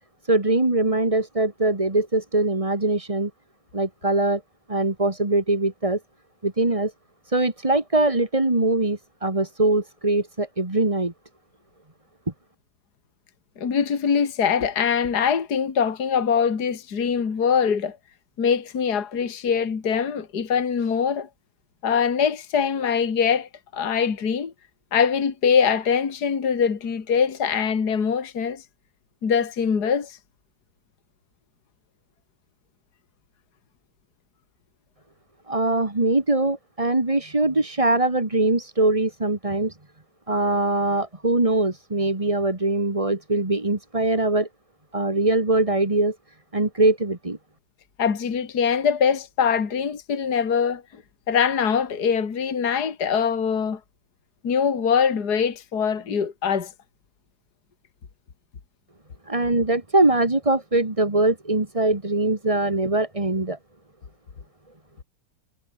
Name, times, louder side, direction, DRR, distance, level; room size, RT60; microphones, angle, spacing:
voice 1, 0.2-3.3 3.7-4.4 4.7-6.0 6.4-6.9 7.3-11.1 35.5-39.8 40.3-44.5 44.9-46.2 46.5-47.4 59.3-63.6, right 2 dB, 15° right, 2.2 m, -22 dB
voice 2, 13.6-18.0 18.4-21.3 21.8-24.5 24.9-28.6 29.2-30.2 48.0-50.8 51.3-53.8 54.4-56.7, left 6 dB, 50° left, 2.6 m, -23 dB
omnidirectional pair, 2.3 m